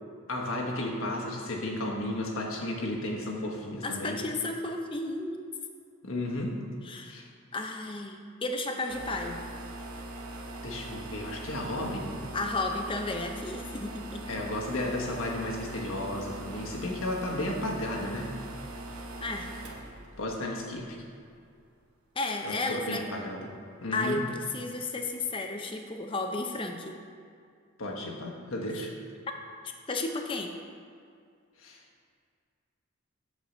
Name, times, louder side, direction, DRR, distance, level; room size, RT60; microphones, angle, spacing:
voice 1, 0.3-4.2 6.0-6.6 7.1-7.3 10.6-12.2 14.3-18.3 20.2-21.0 22.4-23.5 23.8-24.2 27.8-28.9 31.6-31.8, left 1 dB, 70° left, 0 dB, 1.2 m, -33 dB
voice 2, 3.8-5.4 6.8-7.2 7.5-9.4 12.3-14.4 19.2-19.5 22.2-23.0 23.9-27.0 29.9-30.5, left 2 dB, 25° left, 4 dB, 0.5 m, -33 dB
sound 1, 8.9-21.3, right 2 dB, 80° right, 1.0 m, -41 dB
8.4 x 4.6 x 6.6 m, 2.3 s
head